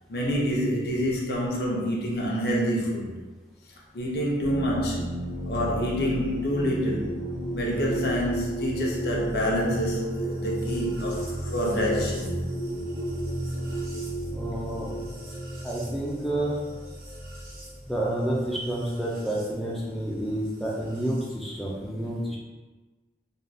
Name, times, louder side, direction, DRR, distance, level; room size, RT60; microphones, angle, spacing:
voice 1, 0.1-3.1 3.9-5.1 5.5-7.2 7.5-12.4, equal, 65° left, -3 dB, 0.6 m, -27 dB
sound 1, 4.4-19.5 20.6-21.3, right 1 dB, 55° right, 0.8 m, -33 dB
voice 2, 14.3-14.9 15.6-16.6 17.9-22.4, right 1 dB, ahead, -6 dB, 0.4 m, -29 dB
3.4 x 2.3 x 2.6 m, 1.3 s
head